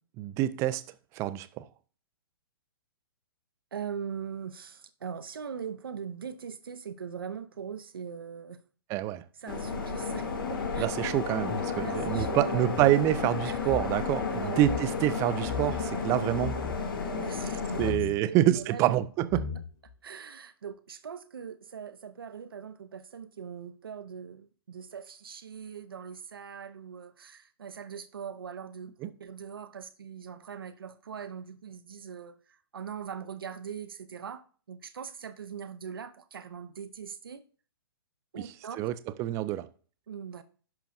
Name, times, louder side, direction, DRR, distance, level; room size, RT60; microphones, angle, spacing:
voice 1, 0.2-0.8 1.2-1.6 8.9-9.2 10.8-16.6 17.8-19.4 29.0-29.1 38.8-39.7, right 14 dB, 20° right, 0.5 m, -27 dB
voice 2, 3.7-8.6 9.4-10.9 11.8-12.7 13.4-13.6 14.3-14.7 17.0-17.6 17.9-19.0 20.0-32.4 32.7-34.4 34.7-37.4 38.3-38.8 40.1-40.4, right 7 dB, 65° right, 0.7 m, -41 dB
sound 1, 9.5-17.9, left 5 dB, 60° left, 1.8 m, -32 dB
sound 2, 11.5-13.9 14.2-14.3 14.6-14.9 15.4-15.9 16.3-16.8 17.8-18.2 18.9-19.0 19.3-19.9, left 5 dB, 35° left, 3.0 m, -37 dB
10.5 x 5.7 x 2.5 m
figure-of-eight pair, 115°, 13 cm